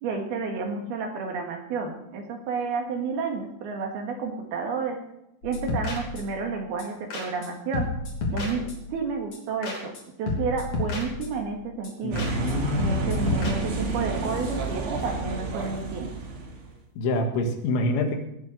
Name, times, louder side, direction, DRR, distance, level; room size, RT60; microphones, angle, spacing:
voice 1, 0.0-5.0 5.4-7.9 8.3-9.9 10.2-12.3 12.7-16.1, right 4 dB, 65° right, 3 dB, 3.5 m, -31 dB
sound 1, 5.4-6.5 6.8-6.9 7.1-7.5 7.7-9.0 9.3-10.0 10.3-11.5 11.8-11.9 12.2-12.5 12.8-13.5, left 3 dB, 40° left, 3.7 m, -31 dB
voice 2, 12.0-13.4 17.0-18.2, left 1 dB, 80° left, 5 dB, 4.0 m, -27 dB
sound 2, 12.1-16.7, right 3 dB, 80° right, 4.7 m, -30 dB
19.0 x 7.1 x 6.7 m, 0.81 s
omnidirectional pair, 5.2 m